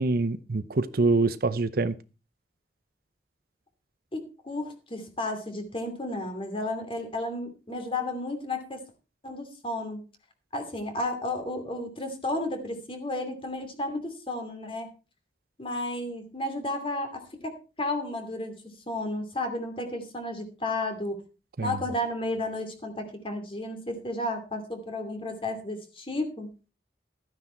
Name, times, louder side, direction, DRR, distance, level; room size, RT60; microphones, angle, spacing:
voice 1, 0.0-1.9 21.6-21.8, right 3 dB, 55° right, 0.7 m, -25 dB
voice 2, 4.1-8.8 9.2-10.0 10.5-14.9 15.6-21.2 21.6-26.5, left 1 dB, 30° left, 2.6 m, -33 dB
13.5 x 9.7 x 4.4 m
head